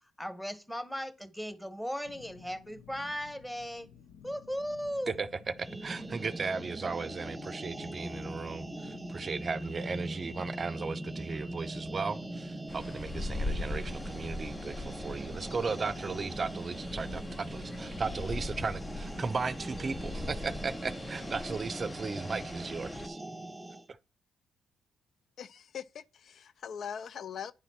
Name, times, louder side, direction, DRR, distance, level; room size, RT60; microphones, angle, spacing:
voice 1, 0.2-3.9 4.2-5.2, equal, 10° left, 1.4 m, -37 dB
sound 1, 2.0-19.4, left 8 dB, 85° left, 0.7 m, -54 dB
sound 2, 5.6-23.9, right 1 dB, 15° right, 0.8 m, -41 dB
voice 2, 5.6-23.2, right 4 dB, 45° right, 0.5 m, -36 dB
sound 3, 12.7-23.1, left 2 dB, 45° left, 0.9 m, -41 dB
voice 3, 25.4-27.5, left 8 dB, 65° left, 0.3 m, -41 dB
9.4 x 4.0 x 5.8 m
hypercardioid pair, 45°, 0 cm